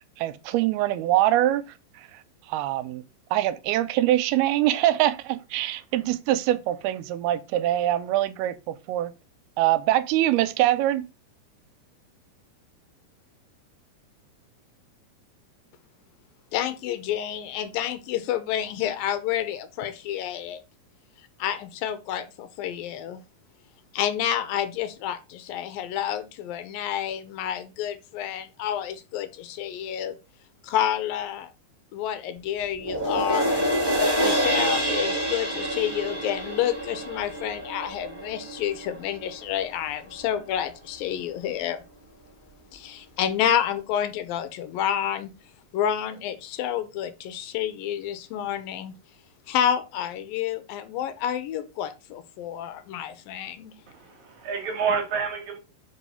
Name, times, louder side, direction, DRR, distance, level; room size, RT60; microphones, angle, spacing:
voice 1, 0.0-1.6 2.5-3.0 3.3-9.1 9.6-11.1, right 14 dB, 90° right, 2.6 m, -24 dB
voice 2, 16.5-20.6 21.2-23.2 23.9-30.2 30.6-31.5 31.9-33.7 34.2-41.8 42.7-45.3 45.7-48.9 49.5-53.7, left 10 dB, 80° left, 2.3 m, -29 dB
sound 1, 32.8-39.4 39.8-39.9, equal, 10° right, 1.1 m, -27 dB
voice 3, 53.9-55.6, right 6 dB, 60° right, 2.1 m, -28 dB
6.1 x 5.0 x 5.5 m
omnidirectional pair, 4.4 m